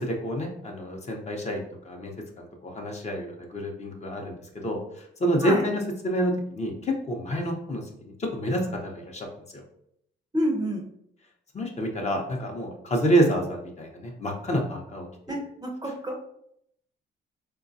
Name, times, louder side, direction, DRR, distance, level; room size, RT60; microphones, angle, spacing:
voice 1, 0.0-2.1 2.4-9.3 9.5-9.6 11.5-15.4, right 1 dB, 35° left, 1 dB, 0.7 m, -28 dB
voice 2, 10.3-10.9 15.3-16.2, equal, 20° right, 1 dB, 0.5 m, -28 dB
3.8 x 2.2 x 2.6 m, 0.74 s
cardioid pair, 90°, 20 cm